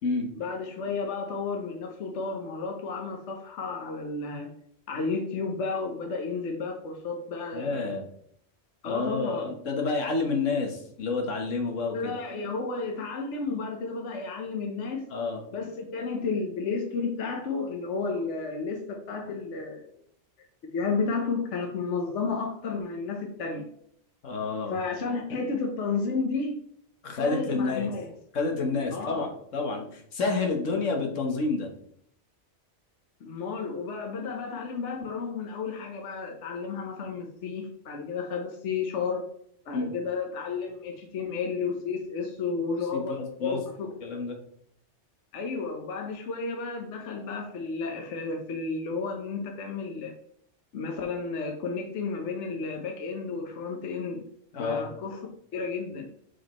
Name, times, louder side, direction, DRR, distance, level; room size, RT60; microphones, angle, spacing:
voice 1, 0.3-4.5 4.9-7.8 8.8-9.5 11.9-15.0 15.5-19.8 20.7-23.6 24.7-26.6 27.2-28.1 28.9-29.3 33.2-39.3 39.7-43.9 45.3-50.1 50.7-54.2 54.6-55.2 55.5-56.1, left 4 dB, 70° left, 2 dB, 1.3 m, -32 dB
voice 2, 7.5-8.0 8.9-12.1 15.1-15.4 24.2-24.8 27.0-27.9 28.3-31.7 39.7-39.9 42.9-43.6 44.0-44.4 54.5-54.9, left 3 dB, 90° left, 2 dB, 1.5 m, -29 dB
6.5 x 5.1 x 3.0 m, 0.67 s
omnidirectional pair, 1.3 m